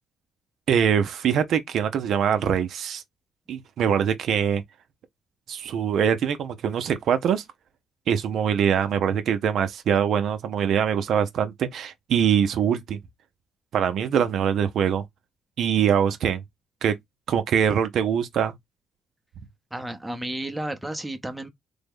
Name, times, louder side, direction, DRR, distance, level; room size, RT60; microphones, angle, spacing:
voice 1, 0.7-3.0 3.5-4.6 5.5-7.4 8.1-13.0 13.7-15.0 15.6-16.4 16.8-16.9 17.3-18.5, right 8 dB, 70° right, 0.4 m, -23 dB
voice 2, 19.7-21.5, right 1 dB, 5° right, 0.6 m, -32 dB
3.3 x 2.0 x 3.4 m
cardioid pair, 90°, 0 cm